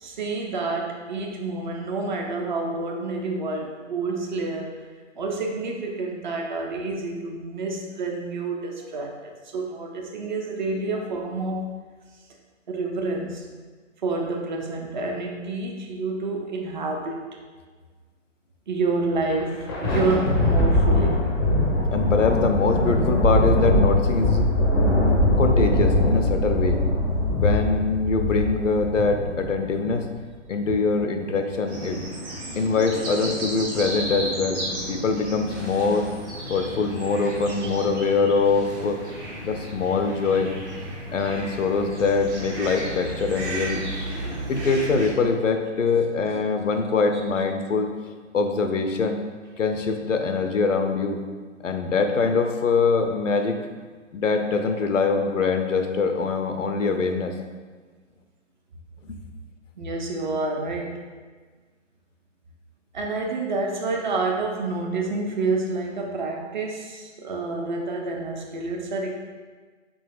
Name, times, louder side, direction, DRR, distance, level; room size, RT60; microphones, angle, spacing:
voice 1, 0.0-4.7 5.2-11.7 12.7-13.4 14.0-17.2 18.7-21.2 59.8-60.9 62.9-69.2, right 3 dB, 40° right, 1 dB, 0.5 m, -28 dB
Thunder, 19.3-30.0, left 1 dB, 20° left, 0.5 m, -21 dB
voice 2, 21.9-24.5 25.4-26.8 27.3-30.1 30.5-32.0 32.6-34.6 34.9-36.1 36.5-39.0 39.4-40.5 41.1-43.8 44.5-47.9 48.3-49.2 49.6-51.2 51.6-53.6 54.1-57.3 59.0-59.2, left 4 dB, 80° left, 5 dB, 0.6 m, -23 dB
sound 1, 31.7-45.1, right 1 dB, 60° right, 1.4 m, -33 dB
4.2 x 3.8 x 2.4 m, 1.4 s
figure-of-eight pair, 125°, 38 cm